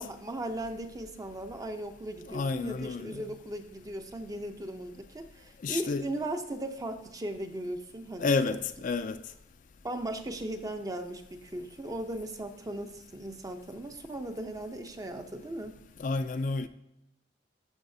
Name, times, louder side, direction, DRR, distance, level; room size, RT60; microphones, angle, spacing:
voice 1, 0.0-8.6 9.8-15.8, right 1 dB, 20° right, 0.6 m, -37 dB
voice 2, 2.3-3.2 5.6-6.1 8.2-9.2 16.0-16.7, left 4 dB, 45° left, 0.4 m, -30 dB
13.5 x 5.7 x 2.7 m
head